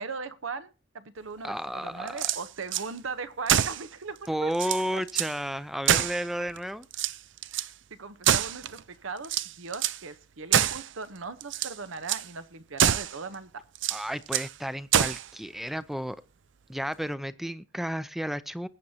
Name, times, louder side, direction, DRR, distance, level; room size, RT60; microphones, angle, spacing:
voice 1, 0.0-5.0 6.4-6.5 7.5-7.6 7.9-9.3 9.6-13.6, right 4 dB, 80° right, 1.0 m, -39 dB
voice 2, 1.4-2.3 4.3-6.9 13.9-16.2 16.7-18.7, equal, ahead, 0.5 m, -32 dB
sound 1, 2.1-2.9 3.5-3.9 4.3-4.4 4.5-5.4 5.9-6.6 6.9-7.7 8.2-8.8 9.2-10.0 10.5-10.9 11.4-11.8 12.1-12.3 12.8-13.2 13.8-14.5 14.9-15.3, right 10 dB, 65° right, 0.5 m, -26 dB
21.0 x 8.9 x 2.8 m
head